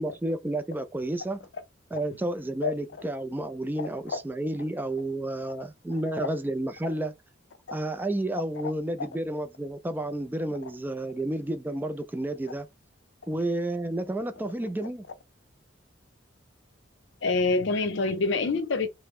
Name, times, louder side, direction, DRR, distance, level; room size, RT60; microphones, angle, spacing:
voice 1, 0.0-1.5 1.9-7.1 7.7-12.7 13.3-15.1, right 1 dB, 10° right, 0.3 m, -31 dB
voice 2, 3.8-4.2 6.1-6.3 7.7-7.8 8.6-8.7 9.0-9.1 17.2-18.9, left 3 dB, 65° left, 0.6 m, -27 dB
3.3 x 2.0 x 3.1 m
head